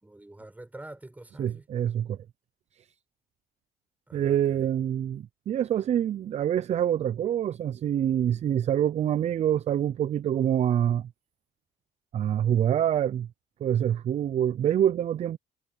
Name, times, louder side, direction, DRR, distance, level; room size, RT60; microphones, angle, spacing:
voice 1, 0.0-1.7 4.1-4.7, right 1 dB, 10° right, 6.9 m, -46 dB
voice 2, 1.4-2.2 4.1-11.1 12.1-13.3 13.6-15.4, right 10 dB, 40° right, 0.4 m, -26 dB
cardioid pair, 110°, 17 cm